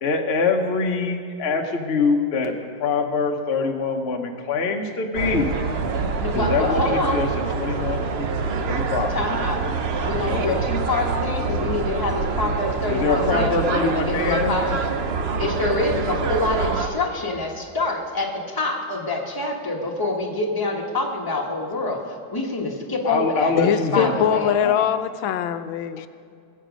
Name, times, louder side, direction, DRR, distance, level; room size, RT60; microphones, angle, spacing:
voice 1, 0.0-2.5 2.8-5.5 6.3-8.0 8.7-9.2 10.3-10.6 12.9-14.5 23.0-24.9, left 4 dB, 45° left, 2 dB, 0.9 m, -24 dB
sound 1, 5.1-16.9, right 4 dB, 70° right, 0.5 m, -25 dB
voice 2, 6.2-7.2 9.1-9.6 10.0-14.8 15.4-24.6, left 2 dB, 10° left, -1 dB, 1.3 m, -26 dB
voice 3, 23.6-26.1, left 9 dB, 80° left, 11 dB, 1.4 m, -22 dB
19.5 x 8.2 x 5.1 m, 2.4 s
omnidirectional pair, 2.1 m